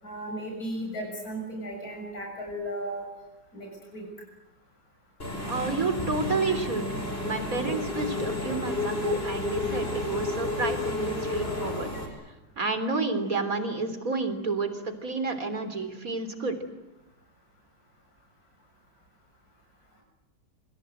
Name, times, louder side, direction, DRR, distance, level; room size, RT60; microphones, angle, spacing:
voice 1, 0.0-3.1 3.5-4.1, right 1 dB, 55° left, 1 dB, 7.2 m, -35 dB
Engine / Mechanisms, 5.2-12.1, left 2 dB, 30° left, 5.5 m, -31 dB
voice 2, 5.5-6.9 7.2-11.9 12.6-16.6, right 3 dB, 50° right, 9 dB, 3.9 m, -30 dB
27.5 x 26.5 x 8.0 m, 0.99 s
omnidirectional pair, 1.9 m